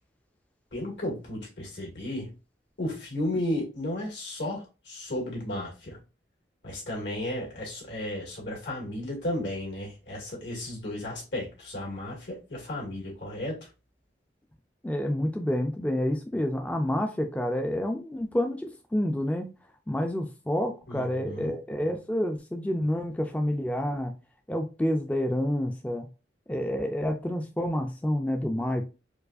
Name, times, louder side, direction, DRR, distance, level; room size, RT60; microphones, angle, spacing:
voice 1, 0.7-2.3 2.8-6.0 6.6-13.6 20.9-21.5, left 1 dB, 80° left, 2.0 m, -34 dB
voice 2, 14.8-19.5 19.9-24.1 24.5-26.1 26.5-28.8, left 1 dB, 10° left, 0.3 m, -28 dB
4.5 x 2.4 x 2.5 m
head